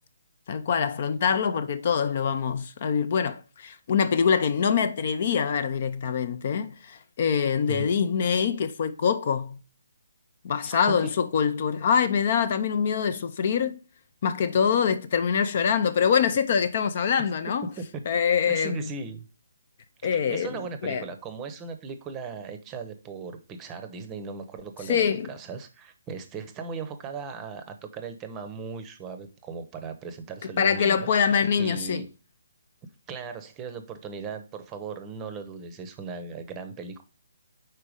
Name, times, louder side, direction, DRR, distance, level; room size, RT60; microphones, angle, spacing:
voice 1, 0.5-9.6 10.4-13.8 14.2-17.7 18.1-18.9 20.0-20.5 20.8-21.0 24.9-25.3 30.4-32.0, left 7 dB, 45° left, 0.6 m, -24 dB
voice 2, 10.6-11.1 17.8-17.9 18.4-19.3 20.0-32.1 33.1-37.0, right 5 dB, 20° right, 0.8 m, -38 dB
4.9 x 4.5 x 4.8 m
figure-of-eight pair, 145°, 0 cm